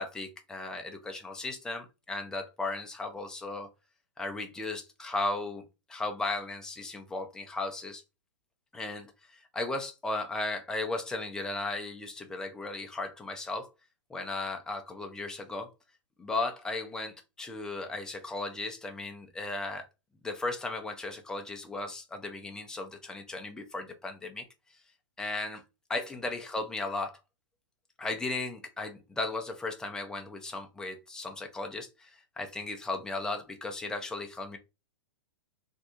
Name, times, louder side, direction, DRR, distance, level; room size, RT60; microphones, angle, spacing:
voice 1, 0.0-3.7 4.2-5.6 5.9-8.0 8.7-13.7 14.1-15.7 16.2-19.9 20.2-24.5 25.2-25.6 25.9-27.2 28.0-34.6, left 2 dB, 5° left, 0.4 m, -36 dB
4.1 x 2.6 x 2.3 m
hypercardioid pair, 155°, 16 cm